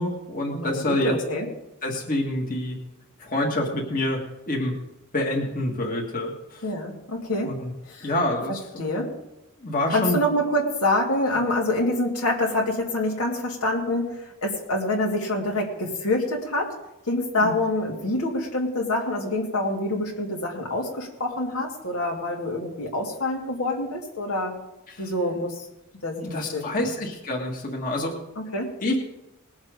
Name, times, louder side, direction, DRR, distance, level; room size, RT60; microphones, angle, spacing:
voice 1, 0.0-1.1 1.8-2.8 3.2-4.2 4.5-4.7 5.1-6.7 7.4-7.7 8.0-8.7 9.6-10.2 17.4-17.5 24.9-25.1 26.2-28.2 28.8-29.0, left 1 dB, 40° left, -1 dB, 1.8 m, -27 dB
voice 2, 0.5-1.5 6.6-7.5 7.9-8.1 8.8-9.1 9.9-16.7 17.1-24.5 25.0-25.5 26.0-26.9 28.4-28.7, left 1 dB, 85° left, -1 dB, 2.6 m, -26 dB
20.0 x 7.3 x 5.2 m, 0.91 s
head